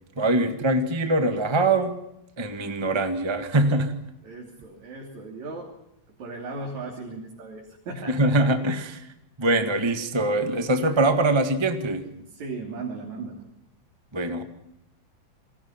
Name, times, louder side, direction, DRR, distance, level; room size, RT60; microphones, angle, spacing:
voice 1, 0.2-1.9 2.4-4.0 8.1-9.0 9.4-12.1 14.1-14.4, right 2 dB, 15° right, 6 dB, 0.9 m, -23 dB
voice 2, 4.2-5.7 6.2-8.1 12.3-13.4, right 3 dB, 60° right, -1 dB, 4.4 m, -36 dB
28.0 x 21.5 x 5.9 m, 0.84 s
omnidirectional pair, 3.7 m